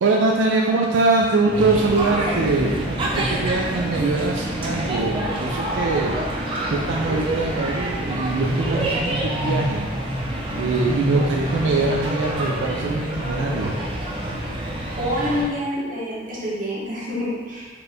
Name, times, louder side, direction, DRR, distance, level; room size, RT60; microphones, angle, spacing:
voice 1, 0.0-6.1 6.7-9.9 10.5-13.8, right 3 dB, 90° right, -1 dB, 0.4 m, -22 dB
sound 1, 1.5-15.4, right 1 dB, 30° right, 0.6 m, -26 dB
voice 2, 14.9-17.7, left 1 dB, 45° right, -6 dB, 1.1 m, -27 dB
4.3 x 2.6 x 3.4 m, 1.4 s
head